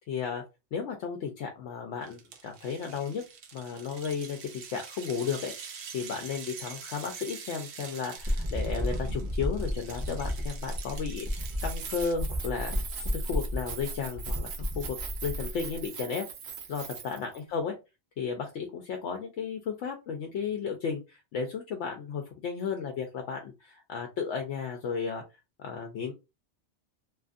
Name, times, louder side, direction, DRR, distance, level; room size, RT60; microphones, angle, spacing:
voice 1, 0.1-0.4 0.7-3.2 3.5-12.7 13.1-15.0 15.2-16.2 16.7-17.7 18.2-25.2 25.6-26.1, left 6 dB, 75° left, 3 dB, 0.9 m, -34 dB
sound 1, 2.0-12.1, right 6 dB, 90° right, 1.0 m, -45 dB
sound 2, 8.2-15.8, equal, 20° right, 0.6 m, -32 dB
Keys jangling, 11.3-17.4, right 6 dB, 60° right, 0.9 m, -41 dB
2.8 x 2.5 x 2.4 m, 0.26 s
omnidirectional pair, 1.3 m